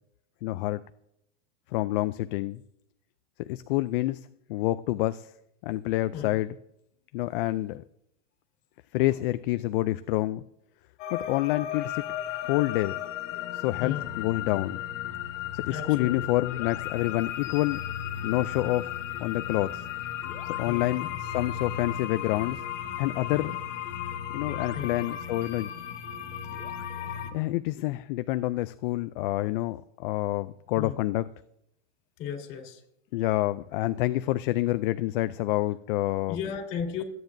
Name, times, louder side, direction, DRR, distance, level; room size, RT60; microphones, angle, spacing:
voice 1, 0.4-0.8 1.7-2.6 3.4-5.3 5.6-6.6 7.1-7.8 8.9-10.4 11.1-12.0 12.5-13.0 13.5-14.8 15.5-17.8 18.2-19.8 20.5-22.6 23.0-23.6 24.3-25.7 27.3-31.3 33.1-36.4, left 17 dB, 50° left, 12 dB, 0.4 m, -28 dB
sound 1, 11.0-27.3, left 10 dB, 80° left, 1.8 m, -35 dB
voice 2, 13.8-14.1 15.7-16.3 20.6-21.1 23.3-23.6 24.7-25.0 30.7-31.0 32.2-32.8 36.3-37.0, left 8 dB, 30° left, 3 dB, 4.1 m, -35 dB
27.5 x 9.3 x 2.6 m, 0.79 s
supercardioid pair, 150°, 36 cm